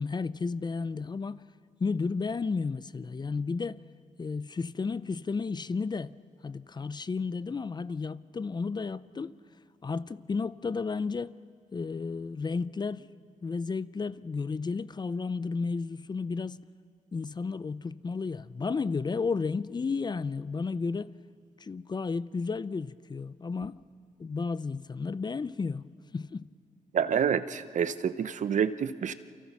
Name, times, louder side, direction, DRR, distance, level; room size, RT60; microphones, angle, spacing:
voice 1, 0.0-1.4 1.8-3.8 4.2-6.1 6.4-9.3 9.8-11.3 11.7-13.1 13.4-16.6 17.1-21.1 21.6-23.8 24.2-26.5, left 4 dB, 30° left, 0.6 m, -32 dB
voice 2, 26.9-29.1, right 7 dB, 65° right, 0.9 m, -28 dB
28.5 x 25.5 x 6.0 m
cardioid pair, 85°, 14 cm